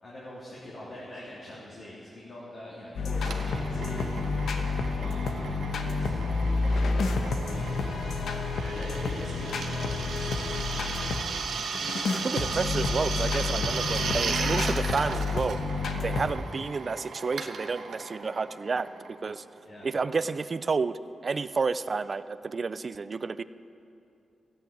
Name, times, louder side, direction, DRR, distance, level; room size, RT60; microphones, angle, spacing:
voice 1, 0.0-4.1 5.0-7.7 8.6-10.7 19.6-19.9, left 1 dB, 45° left, -7 dB, 2.9 m, -44 dB
sound 1, 3.0-11.2 11.7-16.3, left 3 dB, 80° left, 1.1 m, -29 dB
Drill, 3.2-19.6, right 5 dB, 80° right, 1.1 m, -36 dB
voice 2, 12.2-15.6 16.0-19.4 19.8-23.4, right 4 dB, 40° right, 14 dB, 0.4 m, -30 dB
14.0 x 8.8 x 9.1 m, 2.7 s
wide cardioid pair, 120°, 0 cm